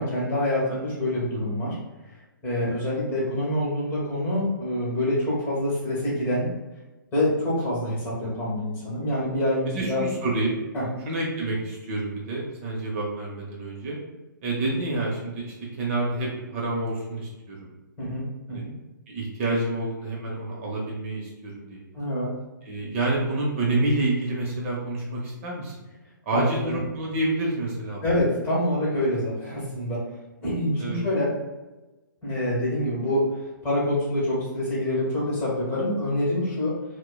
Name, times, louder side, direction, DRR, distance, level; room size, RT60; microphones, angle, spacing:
voice 1, 0.0-1.8 2.4-6.5 7.1-10.0 10.7-10.8 18.0-18.2 18.5-18.7 21.9-22.3 26.3-26.8 28.0-30.0 30.4-31.3 32.2-33.3 33.6-36.7, left 1 dB, 20° left, -7 dB, 1.4 m, -26 dB
voice 2, 9.7-10.6 11.1-14.0 14.4-17.7 18.0-18.1 18.5-18.7 19.1-21.8 22.6-25.7 26.3-28.0 30.8-31.0, right 2 dB, 40° right, -3 dB, 0.7 m, -28 dB
4.3 x 2.1 x 2.3 m, 1.1 s
hypercardioid pair, 135°, 11 cm